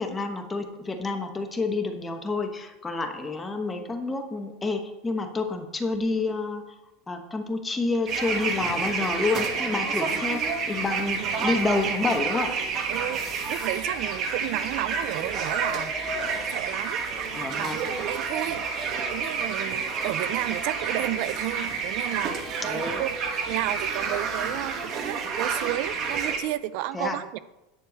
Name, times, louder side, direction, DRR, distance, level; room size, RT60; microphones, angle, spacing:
voice 1, 0.0-6.6 7.1-12.5 17.3-17.8 22.6-23.0 26.9-27.2, left 3 dB, 10° left, 5 dB, 1.1 m, -29 dB
sound 1, 8.1-26.4, right 5 dB, 40° right, 1.6 m, -29 dB
voice 2, 11.2-11.6 12.9-17.0 17.5-18.7 19.1-27.4, right 15 dB, 55° right, 16 dB, 0.3 m, -32 dB
10.0 x 4.5 x 7.8 m, 0.99 s
supercardioid pair, 145°, 0 cm